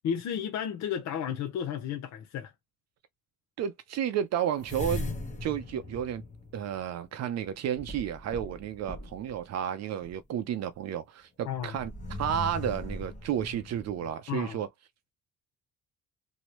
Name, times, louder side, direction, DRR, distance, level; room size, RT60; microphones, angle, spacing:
voice 1, 0.0-2.5 11.5-11.7 14.3-14.6, left 8 dB, 65° left, 0.6 m, -33 dB
voice 2, 3.6-5.1 5.4-6.2 6.5-11.9 12.2-14.7, right 9 dB, 60° right, 0.5 m, -32 dB
sound 1, 4.6-7.1 7.8-9.3 10.0-10.1 11.6-14.1, left 2 dB, 25° left, 1.0 m, -39 dB
3.0 x 2.7 x 2.9 m
cardioid pair, 175°, 30 cm